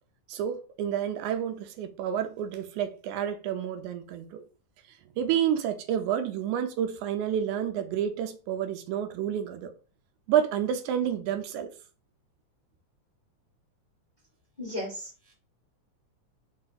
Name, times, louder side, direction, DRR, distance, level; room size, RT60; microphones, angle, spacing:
voice 1, 0.3-4.4 5.2-9.7 10.3-11.7, right 9 dB, 80° right, 2.0 m, -29 dB
voice 2, 14.6-15.3, left 1 dB, 90° left, 0.4 m, -36 dB
5.1 x 2.4 x 3.9 m
omnidirectional pair, 3.5 m